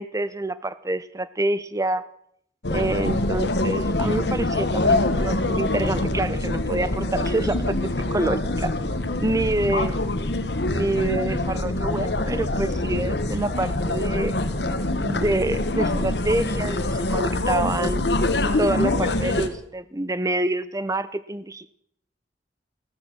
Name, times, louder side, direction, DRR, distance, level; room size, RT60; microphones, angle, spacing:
voice 1, 0.0-2.0 2.7-8.7 9.2-10.0 10.6-14.4 15.0-18.1 18.6-21.7, right 2 dB, 20° right, 15 dB, 0.7 m, -27 dB
sound 1, 2.6-19.5, left 2 dB, 70° left, 1.4 m, -24 dB
15.5 x 13.0 x 6.2 m, 0.70 s
head